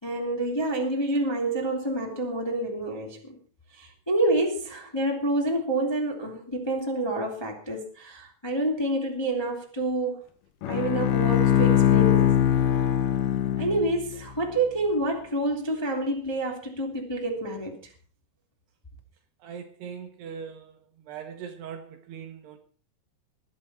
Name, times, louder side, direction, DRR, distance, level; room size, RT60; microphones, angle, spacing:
voice 1, 0.0-3.4 3.7-10.1 10.7-12.3 12.6-12.8 13.6-17.9, right 1 dB, 10° left, 1.8 m, -28 dB
Bowed string instrument, 10.6-14.2, left 10 dB, 70° left, 2.5 m, -22 dB
voice 2, 19.4-20.8 21.1-22.6, right 7 dB, 70° right, 2.9 m, -40 dB
20.0 x 11.5 x 4.4 m
omnidirectional pair, 5.6 m